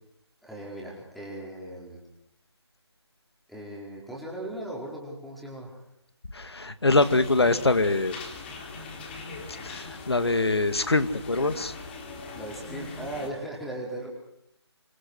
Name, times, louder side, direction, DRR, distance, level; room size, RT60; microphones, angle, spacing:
voice 1, 0.4-2.0 3.5-5.8 12.3-14.1, right 1 dB, ahead, -4 dB, 4.6 m, -38 dB
voice 2, 6.3-8.1 9.6-11.7, left 3 dB, 65° left, 11 dB, 2.2 m, -24 dB
sound 1, 6.9-13.3, left 3 dB, 20° left, 3.7 m, -41 dB
26.5 x 22.0 x 6.3 m, 0.75 s
figure-of-eight pair, 150°, 14 cm